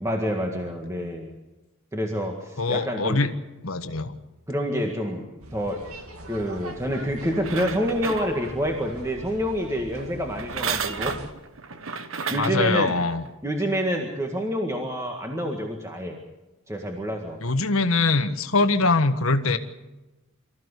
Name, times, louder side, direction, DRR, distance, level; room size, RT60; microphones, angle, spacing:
voice 1, 0.0-1.3 1.9-3.2 4.5-5.3 5.5-5.9 6.3-11.2 11.9-12.0 12.3-13.0 13.4-16.2 16.7-17.4, equal, 15° right, 2 dB, 1.8 m, -27 dB
voice 2, 2.6-3.3 3.6-4.2 12.3-13.2 17.4-19.6, left 3 dB, 75° left, 9 dB, 1.5 m, -23 dB
sound 1, 5.4-11.3, right 1 dB, 85° right, 2.3 m, -42 dB
sound 2, 7.2-8.7 10.3-12.7 13.3-13.4, right 6 dB, 70° right, 1.2 m, -32 dB
25.0 x 14.5 x 8.2 m, 1.1 s
head